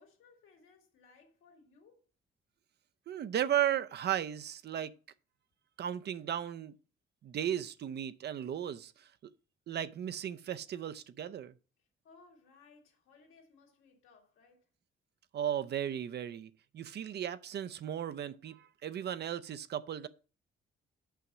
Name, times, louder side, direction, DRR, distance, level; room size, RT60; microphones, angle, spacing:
voice 1, 0.0-2.0 12.0-14.7, left 4 dB, 80° left, 2.6 m, -62 dB
voice 2, 3.1-4.9 5.8-6.7 7.2-9.1 9.7-11.5 15.3-20.1, right 10 dB, 55° right, 0.6 m, -35 dB
6.2 x 5.7 x 6.1 m
cardioid pair, 90°, 20 cm